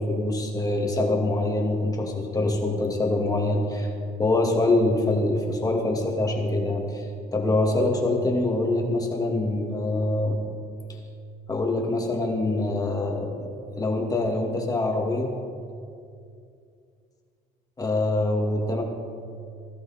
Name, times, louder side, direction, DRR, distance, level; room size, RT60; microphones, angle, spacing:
voice 1, 0.0-3.9 4.2-7.0 7.3-10.4 11.5-15.3 17.8-18.8, left 2 dB, 20° left, 1 dB, 2.5 m, -24 dB
17.5 x 14.0 x 4.5 m, 2.4 s
cardioid pair, 110°, 17 cm